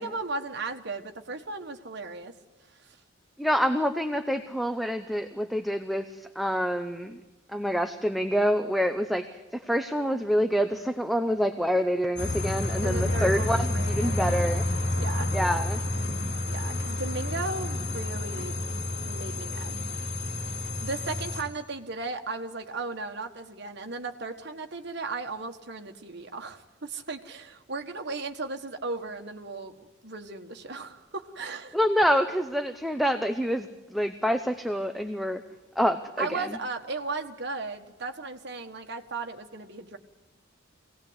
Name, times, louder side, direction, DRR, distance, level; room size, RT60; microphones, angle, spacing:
voice 1, 0.0-2.3 12.8-14.2 15.0-15.3 16.4-18.5 19.0-19.7 20.8-31.8 36.2-40.0, right 3 dB, 60° right, 4 dB, 1.5 m, -36 dB
voice 2, 3.4-7.2 7.5-9.3 9.5-14.6 15.3-15.8 31.7-35.4 35.8-36.5, equal, ahead, 7 dB, 0.7 m, -27 dB
sound 1, 12.2-21.4, left 1 dB, 60° left, 2.5 m, -29 dB
24.0 x 18.0 x 8.1 m, 1.2 s
head